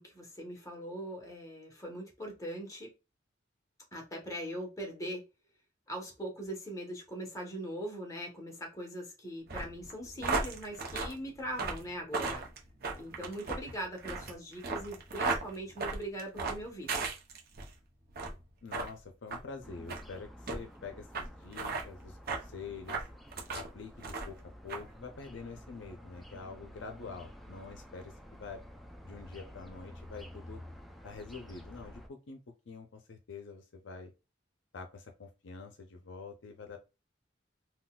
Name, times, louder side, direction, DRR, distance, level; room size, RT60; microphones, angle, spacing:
voice 1, 0.0-2.9 3.9-5.2 5.9-12.5 13.0-17.1, right 1 dB, 20° left, 1.0 m, -41 dB
sound 1, 9.5-17.7 18.1-18.4 18.7-18.9 19.3-19.4 19.9-20.0 20.5-20.6 21.1-21.3 21.5-21.8 22.3-22.4 22.9-23.7 24.0-24.4 24.7-24.8, right 4 dB, 55° right, 0.7 m, -35 dB
voice 2, 18.6-23.0 23.5-24.4 24.6-28.6 29.0-30.6 31.0-32.4 32.7-34.1 34.7-36.8, left 4 dB, 70° left, 0.5 m, -46 dB
sound 2, 19.6-32.1, equal, ahead, 0.4 m, -51 dB
3.8 x 2.2 x 2.3 m
head